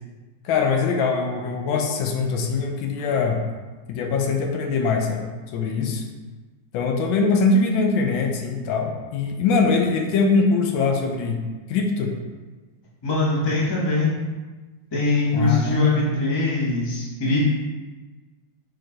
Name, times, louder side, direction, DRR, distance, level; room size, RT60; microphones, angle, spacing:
voice 1, 0.4-3.4 3.9-5.3 5.5-6.0 6.7-11.4 11.7-12.1 15.3-16.1, left 4 dB, 80° left, 3 dB, 1.3 m, -22 dB
voice 2, 13.0-14.1 14.9-17.4, left 3 dB, 25° left, -6 dB, 0.5 m, -22 dB
4.6 x 2.5 x 4.3 m, 1.3 s
omnidirectional pair, 2.2 m